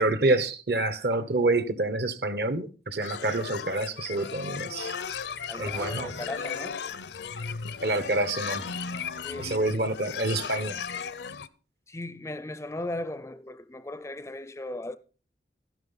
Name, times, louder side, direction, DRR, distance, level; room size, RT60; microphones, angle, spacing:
voice 1, 0.0-4.9 5.6-6.1 7.8-8.6 9.4-10.7, right 2 dB, 65° right, 1.1 m, -27 dB
sound 1, 3.0-11.5, left 6 dB, 75° left, 0.6 m, -36 dB
voice 2, 5.5-6.9 7.2-7.3 9.2-9.6 11.9-15.0, left 2 dB, 15° left, 0.4 m, -37 dB
12.0 x 11.0 x 4.0 m
head